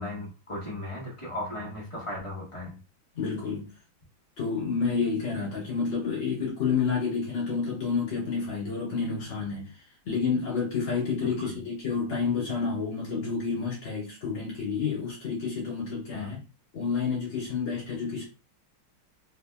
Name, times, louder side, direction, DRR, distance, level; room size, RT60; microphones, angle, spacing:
voice 1, 0.0-2.8 11.2-11.5 16.1-16.4, left 1 dB, 35° left, 0.5 m, -36 dB
voice 2, 3.2-3.7 4.4-9.7 10.1-16.4 16.7-18.2, left 5 dB, 70° left, 2.5 m, -29 dB
4.9 x 2.1 x 2.2 m
omnidirectional pair, 2.3 m